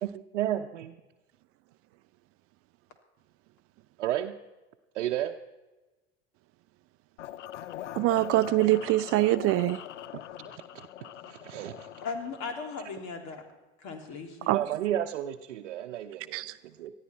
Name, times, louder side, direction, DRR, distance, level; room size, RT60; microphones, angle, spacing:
voice 1, 0.0-0.9 4.0-4.3 4.9-5.3 10.4-11.9 14.5-16.4 16.6-16.9, right 12 dB, 75° right, 0.8 m, -33 dB
sound 1, 7.2-13.1, left 12 dB, 85° left, 0.6 m, -43 dB
voice 2, 7.9-9.8 14.5-14.6 16.3-16.6, right 17 dB, 40° right, 0.5 m, -24 dB
voice 3, 12.0-13.4 13.8-14.6, left 5 dB, 50° left, 3.2 m, -37 dB
19.5 x 13.5 x 4.4 m
hypercardioid pair, 80°, 35 cm